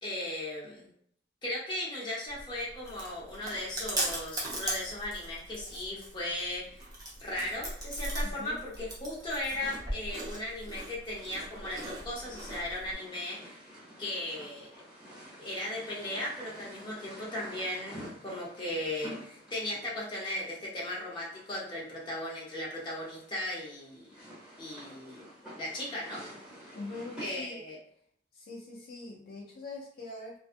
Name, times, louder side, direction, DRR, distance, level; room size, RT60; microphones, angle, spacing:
voice 1, 0.0-0.9 1.4-6.8 7.2-13.4 14.0-14.7 15.4-24.1 24.6-25.2 25.5-26.3 27.2-27.8, left 1 dB, 25° left, -6 dB, 0.8 m, -37 dB
Chewing mastication, 2.3-12.9, right 1 dB, 20° right, 0.7 m, -39 dB
voice 2, 8.2-8.6 26.7-27.6 28.3-30.4, left 2 dB, 55° left, -3 dB, 0.4 m, -43 dB
sound 1, 11.1-27.3, equal, 5° right, 1.0 m, -50 dB
2.5 x 2.3 x 2.5 m, 0.67 s
head